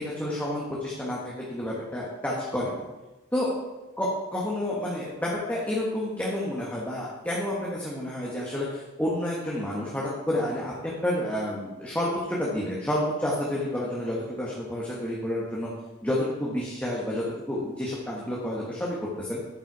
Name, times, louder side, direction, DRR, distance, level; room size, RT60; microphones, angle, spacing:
voice 1, 0.0-2.8 3.3-3.6 4.0-15.7 16.0-19.4, left 1 dB, 10° left, -5 dB, 1.4 m, -30 dB
12.0 x 5.9 x 4.8 m, 1.1 s
head